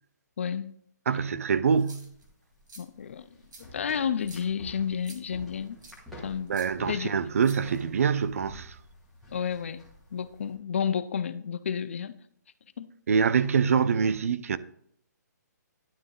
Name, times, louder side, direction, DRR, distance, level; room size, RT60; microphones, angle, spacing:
voice 1, 0.4-0.7 2.8-3.2 3.6-5.8 6.2-6.5 6.9-7.1 9.3-9.8 10.1-12.1 12.8-12.9, left 7 dB, 45° left, 0.4 m, -31 dB
voice 2, 1.1-2.1 6.5-8.8 13.1-14.6, right 6 dB, 50° right, 0.4 m, -25 dB
sound 1, 1.7-10.5, equal, ahead, 1.4 m, -49 dB
sound 2, 1.7-2.2 2.7-2.8 3.5-3.6 4.2-4.5 5.0-5.2 5.8-6.0 6.5-6.7 7.4-8.0, right 3 dB, 85° right, 2.0 m, -49 dB
11.0 x 3.8 x 3.7 m
hypercardioid pair, 170°, 10 cm